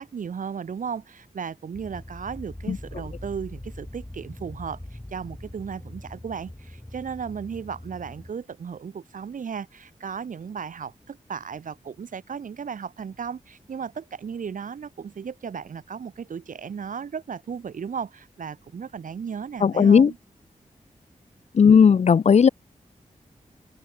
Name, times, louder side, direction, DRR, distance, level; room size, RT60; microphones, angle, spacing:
voice 1, 0.0-20.2, right 6 dB, 80° right, 1.5 m, -35 dB
sound 1, 1.7-8.3, left 1 dB, 10° left, 4.6 m, -42 dB
voice 2, 19.6-20.1 21.5-22.5, left 6 dB, 55° left, 0.5 m, -15 dB
open air
wide cardioid pair, 100°, 13 cm